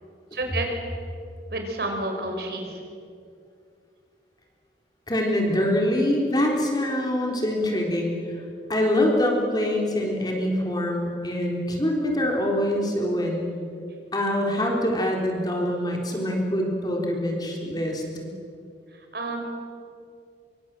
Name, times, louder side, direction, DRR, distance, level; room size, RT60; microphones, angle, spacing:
voice 1, 0.3-0.7 1.5-2.8 19.1-19.4, right 2 dB, 60° right, 3 dB, 5.2 m, -29 dB
voice 2, 5.1-8.4 8.7-13.5 14.1-18.2, left 1 dB, 25° left, 0 dB, 3.9 m, -24 dB
26.0 x 24.0 x 7.6 m, 2.4 s
head